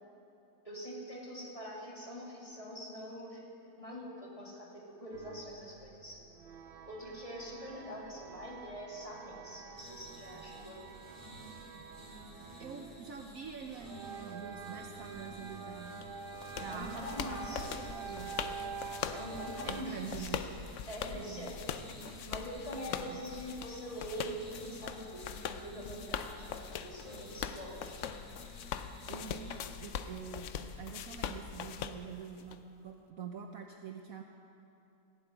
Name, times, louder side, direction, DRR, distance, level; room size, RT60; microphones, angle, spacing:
voice 1, 0.6-3.5 3.8-6.2 6.8-10.9 16.7-17.7 18.1-18.2 19.1-20.4 20.9-21.6 22.2-28.0, equal, 20° left, -4 dB, 2.4 m, -44 dB
sound 1, 5.1-19.8, right 5 dB, 85° right, 0.5 m, -47 dB
sound 2, 9.7-29.6, equal, ahead, 4.3 m, -54 dB
voice 2, 12.6-16.0 16.6-18.4 19.6-20.4 21.1-21.5 22.9-23.2 29.1-30.5 30.8-34.2, right 6 dB, 60° right, 3 dB, 1.1 m, -45 dB
sound 3, 16.0-32.6, left 8 dB, 65° left, 0.7 m, -42 dB
15.0 x 8.0 x 9.0 m, 2.7 s
omnidirectional pair, 1.8 m